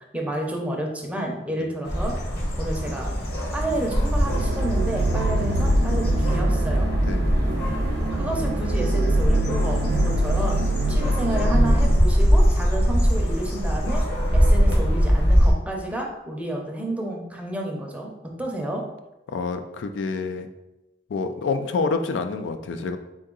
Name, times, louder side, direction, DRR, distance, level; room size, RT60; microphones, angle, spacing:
voice 1, 0.1-2.2 2.6-3.1 3.5-6.9 8.1-14.0 14.3-18.1 18.4-18.8, right 1 dB, 10° right, 0 dB, 0.6 m, -30 dB
sound 1, 1.8-15.5, equal, 60° left, 1.0 m, -22 dB
sound 2, 4.3-11.9, right 1 dB, 65° right, 0.5 m, -24 dB
voice 2, 7.1-7.4 19.3-20.5 21.1-23.0, left 4 dB, 80° left, 7 dB, 0.4 m, -27 dB
3.8 x 2.8 x 3.7 m, 1.0 s
head